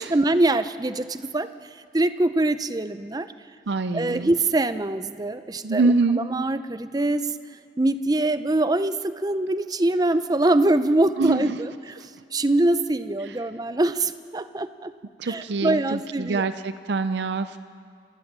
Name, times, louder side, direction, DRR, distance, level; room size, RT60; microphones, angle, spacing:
voice 1, 0.0-3.3 3.9-7.4 7.8-14.9 15.2-16.5, right 2 dB, 20° right, 12 dB, 0.6 m, -24 dB
voice 2, 3.7-4.3 5.6-6.2 11.2-11.4 12.0-12.1 15.2-17.6, right 3 dB, 65° right, 11 dB, 0.5 m, -25 dB
27.0 x 14.0 x 7.4 m, 2.4 s
head